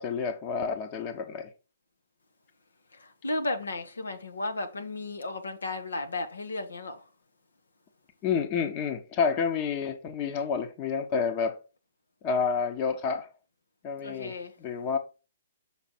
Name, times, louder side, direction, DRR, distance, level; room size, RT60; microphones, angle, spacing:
voice 1, 0.0-1.5 8.2-11.6 12.2-13.3 13.8-15.0, left 6 dB, 35° left, 1.2 m, -29 dB
voice 2, 3.0-7.0 14.0-14.5, left 2 dB, 80° left, 1.4 m, -34 dB
7.2 x 5.0 x 4.5 m
figure-of-eight pair, 125°, 0 cm